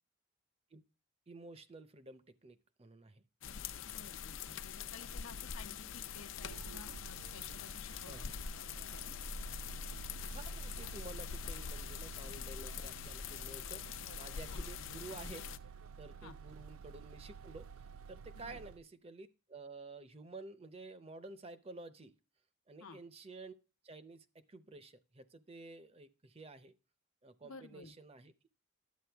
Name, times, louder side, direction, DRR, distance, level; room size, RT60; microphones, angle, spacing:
voice 1, 1.3-3.2 8.1-8.4 10.3-15.7 16.0-22.1 22.7-23.5 23.8-26.8 27.2-28.5, right 3 dB, 30° right, 12 dB, 0.6 m, -52 dB
sound 1, 3.4-15.6, left 7 dB, 65° left, 0.5 m, -44 dB
voice 2, 3.8-8.3 8.8-9.1 14.5-14.6 16.2-16.4 18.4-18.6 22.8-23.0 27.4-27.9, left 4 dB, 85° left, 5 dB, 0.9 m, -54 dB
sound 2, 6.4-18.8, right 3 dB, 85° right, 0.5 m, -49 dB
11.5 x 8.5 x 3.4 m, 0.33 s
head